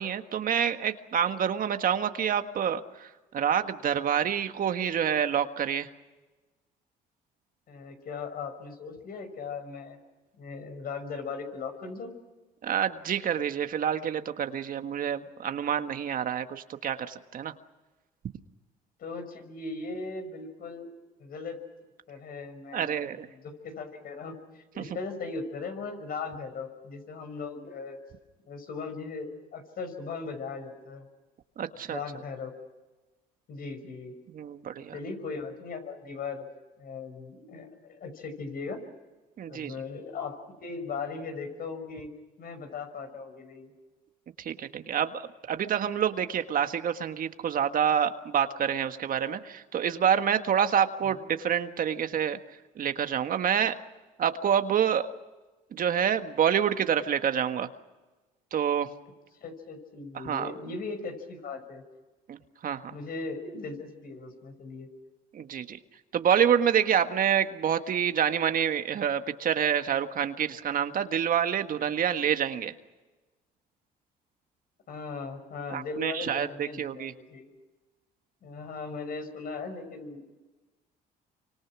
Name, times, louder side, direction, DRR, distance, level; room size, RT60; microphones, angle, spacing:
voice 1, 0.0-5.9 12.6-17.5 22.7-23.3 24.8-24.9 31.6-32.0 34.3-34.9 39.4-39.7 44.4-52.4 52.8-53.8 54.2-55.1 55.7-57.7 58.5-58.9 60.1-60.5 62.3-62.9 65.3-65.8 66.1-72.7 75.7-77.1, right 8 dB, 55° right, 8 dB, 1.6 m, -27 dB
voice 2, 7.7-10.0 10.4-12.1 19.0-20.9 21.2-21.6 22.1-28.0 28.4-31.1 31.9-32.5 33.5-34.1 34.9-36.5 36.8-38.8 39.5-42.1 42.4-43.7 59.4-61.8 62.9-64.9 74.9-77.5 78.4-80.2, left 4 dB, 60° left, 7 dB, 5.9 m, -38 dB
28.0 x 25.5 x 6.2 m, 1.2 s
supercardioid pair, 85°, 17 cm